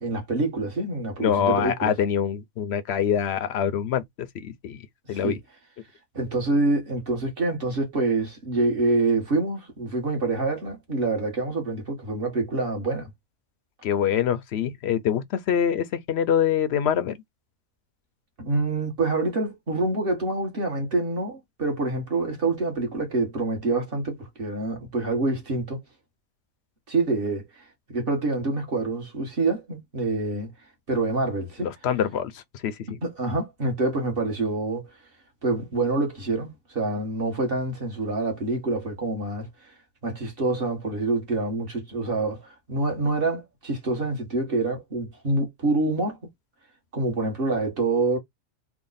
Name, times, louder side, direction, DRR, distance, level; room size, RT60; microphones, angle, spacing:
voice 1, 0.0-1.9 5.1-5.4 6.1-13.1 18.4-25.8 26.9-27.7 27.9-30.5 30.9-31.7 33.0-34.9 35.4-39.7 40.0-46.2 46.9-48.2, right 2 dB, 45° right, 1.5 m, -26 dB
voice 2, 1.2-4.0 4.3-4.8 5.1-5.4 13.8-17.2 31.6-32.7, left 8 dB, 60° left, 0.8 m, -25 dB
3.6 x 2.1 x 3.9 m
omnidirectional pair, 1.4 m